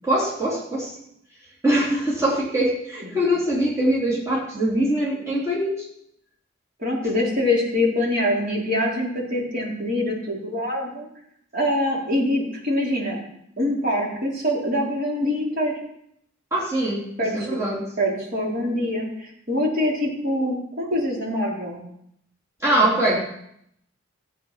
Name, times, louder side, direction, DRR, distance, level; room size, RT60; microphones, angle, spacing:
voice 1, 0.0-1.0 1.6-5.9 16.5-17.9 22.6-23.2, right 1 dB, 15° right, -6 dB, 3.3 m, -23 dB
voice 2, 6.8-11.1 11.5-13.2 13.6-15.7 17.2-17.6 18.0-21.8 22.8-23.2, left 1 dB, 45° right, -4 dB, 4.0 m, -24 dB
15.0 x 8.3 x 5.7 m, 0.74 s
head